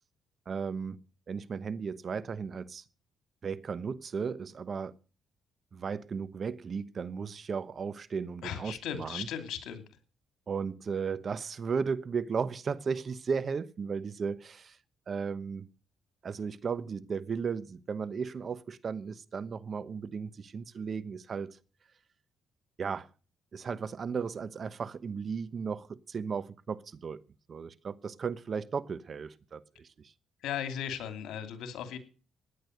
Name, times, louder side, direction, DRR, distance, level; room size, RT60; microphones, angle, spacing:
voice 1, 0.5-1.0 1.3-2.8 3.4-4.9 5.7-9.3 10.5-14.8 15.1-15.7 16.2-21.6 22.8-23.1 23.5-27.2 27.5-30.1, right 5 dB, 45° right, 1.0 m, -35 dB
voice 2, 8.4-9.8 30.4-32.0, left 9 dB, 85° left, 2.8 m, -37 dB
16.5 x 10.0 x 6.6 m
cardioid pair, 90°, 0 cm